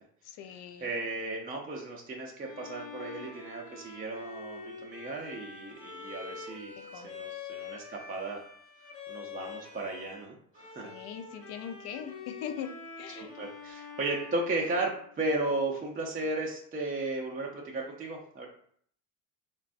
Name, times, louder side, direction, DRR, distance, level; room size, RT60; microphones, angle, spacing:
voice 1, 0.2-0.9 6.8-7.1 10.8-13.4, left 8 dB, 60° left, 8 dB, 0.5 m, -41 dB
voice 2, 0.8-8.4 9.1-10.9 13.2-18.5, right 2 dB, 20° right, 0 dB, 0.4 m, -35 dB
Bowed string instrument, 2.4-10.3 10.5-15.3, left 5 dB, 30° left, 0.8 m, -46 dB
3.2 x 2.2 x 2.4 m, 0.62 s
hypercardioid pair, 70°, 44 cm